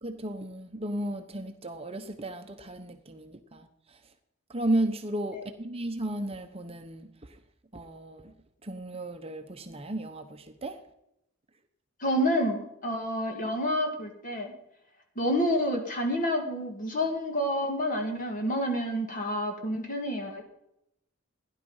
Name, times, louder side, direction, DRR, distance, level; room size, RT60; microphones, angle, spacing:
voice 1, 0.0-4.0 4.5-7.4 7.7-8.3 8.6-10.8, right 1 dB, 25° right, 0.9 m, -34 dB
voice 2, 12.0-14.5 15.2-20.4, equal, 40° left, 2.0 m, -29 dB
16.0 x 11.0 x 5.5 m
head